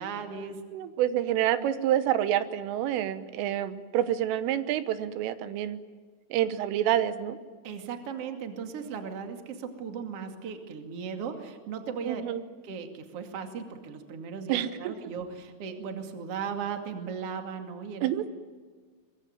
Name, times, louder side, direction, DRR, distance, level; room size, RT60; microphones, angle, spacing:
voice 1, 0.0-0.6 7.6-12.2 12.6-18.3, right 6 dB, 40° right, 5 dB, 2.5 m, -37 dB
voice 2, 0.7-5.8 6.3-7.4 12.1-12.4 14.5-14.9 18.0-18.3, right 11 dB, 85° right, 12 dB, 3.7 m, -28 dB
23.5 x 22.0 x 9.4 m, 1.5 s
omnidirectional pair, 5.6 m